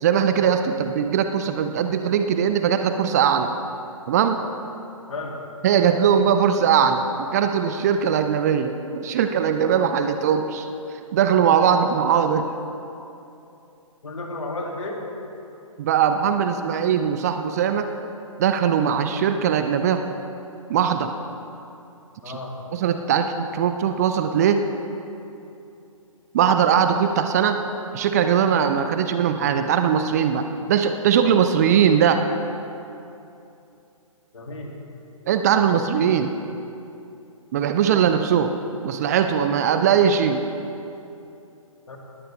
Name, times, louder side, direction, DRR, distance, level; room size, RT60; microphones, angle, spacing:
voice 1, 0.0-3.5 4.1-4.4 5.6-7.0 7.3-10.7 11.1-12.4 15.8-17.9 18.4-20.0 20.7-21.1 22.3-22.4 22.7-24.6 26.3-27.6 27.9-32.2 35.3-36.3 37.5-38.5 38.8-40.4, right 8 dB, 30° right, 8 dB, 0.6 m, -20 dB
voice 2, 14.0-15.0 22.2-22.5 34.3-34.7 41.9-42.0, left 2 dB, 60° left, 0 dB, 2.7 m, -32 dB
19.5 x 15.5 x 3.5 m, 2.8 s
figure-of-eight pair, 130°, 18 cm